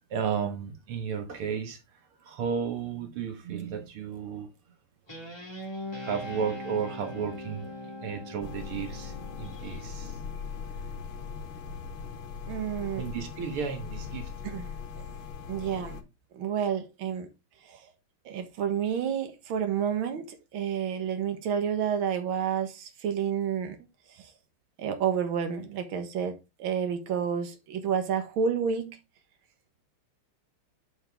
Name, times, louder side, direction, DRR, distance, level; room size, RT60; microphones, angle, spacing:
voice 1, 0.1-4.5 6.0-10.4 12.3-12.4 12.7-14.3 14.9-15.1, right 7 dB, 85° right, 2.3 m, -34 dB
Guitar, 5.1-9.8, left 1 dB, 10° left, 2.0 m, -41 dB
sound 1, 8.4-16.0, left 6 dB, 75° left, 1.9 m, -40 dB
voice 2, 12.5-13.0 14.4-14.6 15.5-16.0 16.3-17.3 17.7-17.8 18.3-23.8 24.1-24.3 24.8-29.0, right 7 dB, 70° right, 2.0 m, -30 dB
7.6 x 7.1 x 3.3 m
omnidirectional pair, 2.3 m